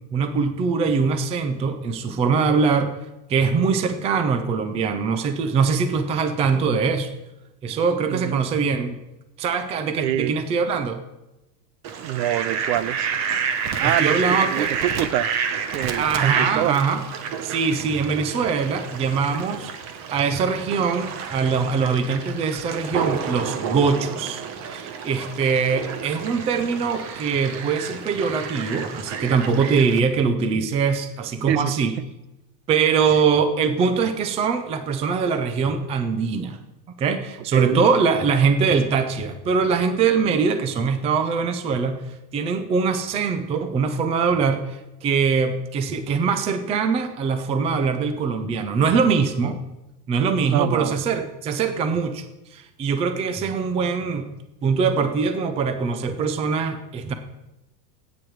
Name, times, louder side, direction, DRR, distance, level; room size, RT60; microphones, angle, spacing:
voice 1, 0.1-2.9 3.3-7.1 7.6-9.0 9.4-11.0 13.8-14.7 16.0-17.0 17.4-19.7 20.1-31.9 32.7-36.6 37.0-42.0 42.3-49.6 50.1-52.3 52.5-54.3 54.6-57.1, right 5 dB, 15° right, 9 dB, 0.4 m, -22 dB
voice 2, 8.1-8.4 10.0-10.3 12.0-13.1 13.8-15.3 15.7-16.7 31.5-31.8 37.5-37.8 50.5-51.0, right 12 dB, 85° right, 18 dB, 0.8 m, -25 dB
Fowl, 11.8-30.0, right 6 dB, 35° right, 1.1 m, -29 dB
15.0 x 9.0 x 4.6 m, 0.97 s
supercardioid pair, 150°, 50 cm